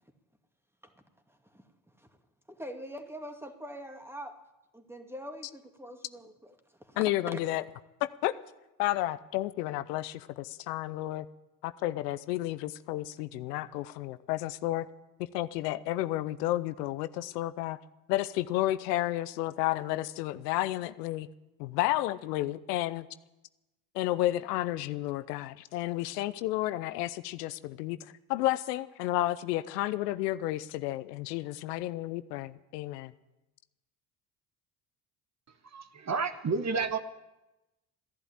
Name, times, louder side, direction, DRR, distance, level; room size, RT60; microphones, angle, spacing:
voice 1, 1.3-1.7 2.0-2.1 2.5-4.4 4.7-7.0 7.3-7.4, equal, 5° right, 5 dB, 2.3 m, -44 dB
voice 2, 7.0-7.6 8.0-8.3 8.8-11.3 11.6-14.9 15.3-17.8 18.1-21.3 21.6-23.1 23.9-28.0 28.3-33.1, left 16 dB, 90° left, 14 dB, 0.7 m, -31 dB
voice 3, 35.7-37.0, right 4 dB, 35° right, 9 dB, 1.3 m, -30 dB
15.0 x 11.0 x 8.6 m, 0.98 s
hypercardioid pair, 65°, 46 cm